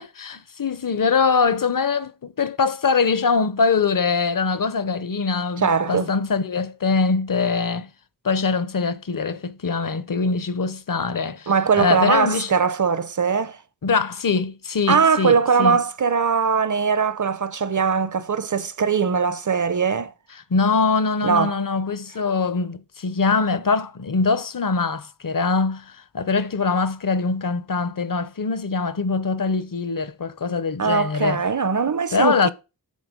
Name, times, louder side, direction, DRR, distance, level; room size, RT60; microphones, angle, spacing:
voice 1, 0.0-7.9 8.2-12.5 13.8-15.8 20.5-31.4 32.1-32.5, left 4 dB, 55° left, 0.8 m, -23 dB
voice 2, 5.6-6.1 11.5-13.6 14.9-20.1 21.2-21.5 30.8-32.5, right 5 dB, 50° right, 0.8 m, -21 dB
12.5 x 4.3 x 5.1 m
wide cardioid pair, 55°, 39 cm